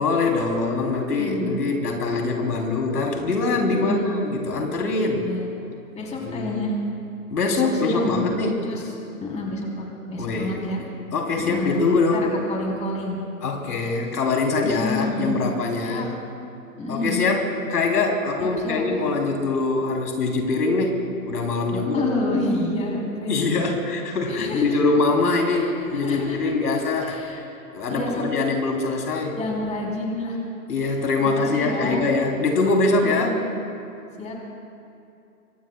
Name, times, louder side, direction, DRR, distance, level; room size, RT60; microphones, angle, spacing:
voice 1, 0.0-5.3 6.3-6.5 7.3-8.6 10.2-10.6 11.1-12.3 13.4-16.1 16.9-20.9 21.2-22.0 23.3-27.2 27.7-29.4 30.7-33.4, left 3 dB, 80° left, 1 dB, 3.2 m, -23 dB
voice 2, 1.1-1.5 3.8-4.2 5.1-5.5 5.9-6.7 7.5-8.3 8.6-8.8 9.2-10.8 11.4-11.8 12.1-13.2 13.8-13.9 14.6-15.4 15.8-16.1 16.8-17.2 18.4-19.0 21.7-23.7 24.3-24.8 25.6-26.5 27.0-27.4 27.9-28.2 29.4-30.4 31.4-32.1 33.0-33.4 34.2-34.3, left 2 dB, 15° left, -2 dB, 3.3 m, -29 dB
25.0 x 24.5 x 2.2 m, 2.6 s
hypercardioid pair, 135°, 46 cm